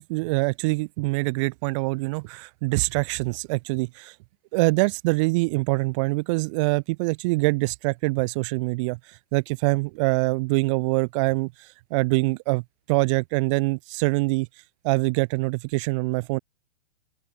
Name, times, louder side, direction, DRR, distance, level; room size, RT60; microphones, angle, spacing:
voice 1, 0.0-4.1 4.5-9.0 9.3-11.5 11.9-14.5 14.8-16.4, right 26 dB, 25° right, 0.5 m, -24 dB
open air
hypercardioid pair, 120°, 35 cm